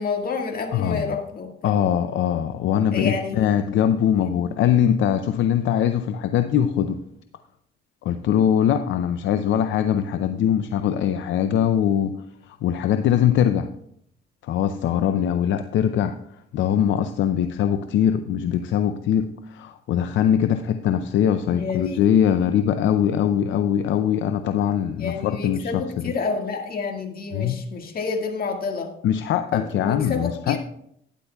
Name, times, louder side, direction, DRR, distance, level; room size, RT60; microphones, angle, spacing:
voice 1, 0.0-1.8 2.9-3.4 21.5-22.0 25.0-28.9 29.5-30.6, left 5 dB, 50° left, 3 dB, 1.8 m, -29 dB
voice 2, 0.7-1.2 1.6-7.0 8.0-12.2 12.6-13.7 14.4-16.1 16.5-26.1 27.3-27.6 29.0-30.6, left 9 dB, 75° left, 9 dB, 0.5 m, -22 dB
12.0 x 10.0 x 2.3 m, 0.71 s
cardioid pair, 90°, 20 cm